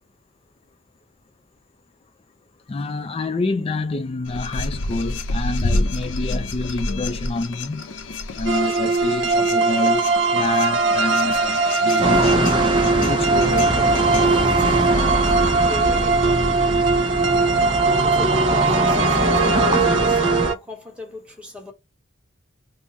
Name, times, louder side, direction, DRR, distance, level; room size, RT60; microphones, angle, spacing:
voice 1, 2.7-7.9 8.4-13.9, left 3 dB, 30° left, 0.3 m, -27 dB
sound 1, 4.2-14.2, left 2 dB, 85° left, 0.6 m, -29 dB
sound 2, 8.5-20.6, right 4 dB, 75° right, 0.7 m, -20 dB
sound 3, 12.0-20.5, right 1 dB, 25° right, 0.7 m, -23 dB
voice 2, 15.5-16.5 18.0-21.7, left 3 dB, 5° right, 1.0 m, -37 dB
3.5 x 2.0 x 4.0 m
head